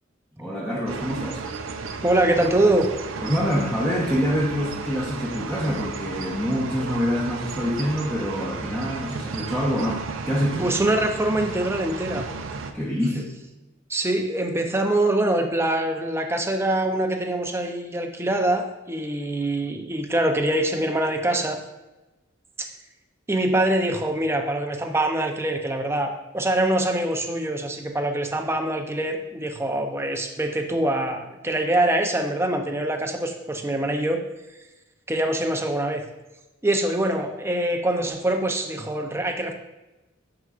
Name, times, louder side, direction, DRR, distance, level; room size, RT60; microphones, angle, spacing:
voice 1, 0.4-1.5 3.2-10.7 12.7-13.3, equal, 5° left, -6 dB, 1.0 m, -26 dB
sound 1, 0.9-12.7, right 4 dB, 80° right, 0.6 m, -34 dB
voice 2, 2.0-2.9 10.6-12.3 13.9-21.6 22.6-22.7 23.3-34.2 35.1-36.0 36.6-39.5, right 1 dB, 15° right, 4 dB, 0.6 m, -24 dB
11.0 x 4.8 x 2.5 m, 1.1 s
head